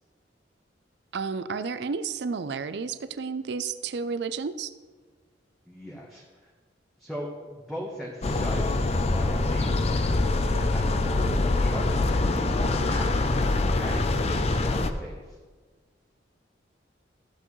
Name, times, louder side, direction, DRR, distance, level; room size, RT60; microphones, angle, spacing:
voice 1, 1.1-4.7, right 5 dB, 65° right, 13 dB, 0.4 m, -31 dB
voice 2, 5.7-6.5 7.0-10.1 10.7-15.4, equal, ahead, -5 dB, 1.1 m, -39 dB
sound 1, 8.2-14.9, left 2 dB, 35° left, 0.5 m, -24 dB
14.5 x 7.7 x 3.1 m, 1.4 s
head